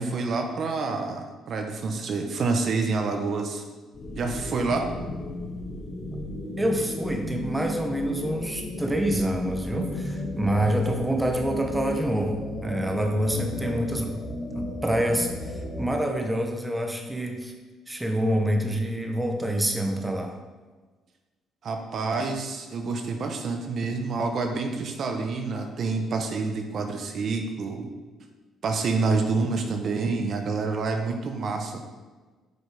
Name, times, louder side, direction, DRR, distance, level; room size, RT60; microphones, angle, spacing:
voice 1, 0.0-3.6 4.2-4.9 21.6-27.9 28.6-31.8, right 4 dB, 50° right, 4 dB, 1.0 m, -28 dB
sound 1, 3.9-15.9, left 1 dB, 40° left, 2.5 m, -34 dB
voice 2, 6.6-14.2 14.5-17.5 17.9-20.4, right 1 dB, 10° right, 3 dB, 1.0 m, -27 dB
8.0 x 5.3 x 4.9 m, 1.3 s
cardioid pair, 120°, 0 cm